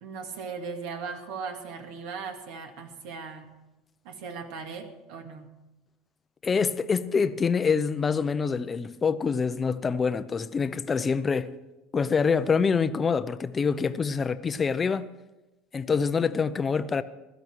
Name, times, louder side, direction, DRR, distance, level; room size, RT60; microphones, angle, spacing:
voice 1, 0.0-3.5 4.0-5.5, right 5 dB, 70° right, 2.2 m, -38 dB
voice 2, 6.4-11.5 11.9-15.1 15.7-17.0, left 5 dB, 20° left, 0.6 m, -26 dB
16.0 x 12.5 x 4.6 m
supercardioid pair, 130°, 0 cm